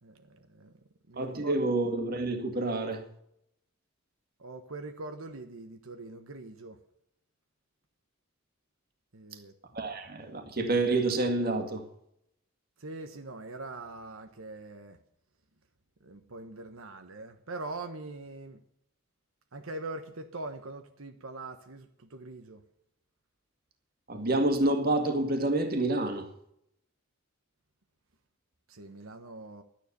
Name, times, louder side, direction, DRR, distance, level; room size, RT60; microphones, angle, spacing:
voice 1, 0.0-0.7 1.1-1.6 4.4-6.8 9.1-9.5 12.8-15.0 16.0-18.6 19.5-22.6 28.7-29.6, right 2 dB, 90° right, 1.3 m, -42 dB
voice 2, 1.2-3.0 9.7-11.8 24.1-26.3, right 2 dB, 45° right, 2.0 m, -28 dB
12.0 x 10.0 x 6.8 m
head